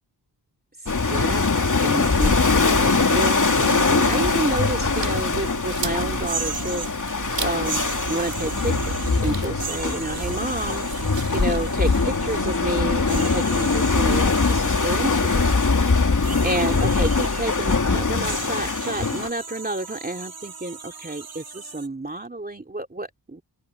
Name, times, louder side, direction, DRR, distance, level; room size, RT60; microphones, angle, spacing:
sound 1, 0.9-19.3, left 4 dB, 45° left, 3.0 m, -22 dB
voice 1, 1.0-1.5 1.8-6.9 7.4-7.8 8.1-10.9 11.3-15.6 16.4-23.4, right 2 dB, 20° right, 3.1 m, -30 dB
sound 2, 2.0-2.3 3.1-4.1 5.2-5.3 6.2-7.0 7.5-9.3 9.6-12.6 13.1-15.7 16.2-17.8 18.2-21.9, right 5 dB, 55° right, 2.6 m, -37 dB
sound 3, 2.6-12.6, right 5 dB, 80° right, 5.3 m, -35 dB
open air
wide cardioid pair, 90°, 43 cm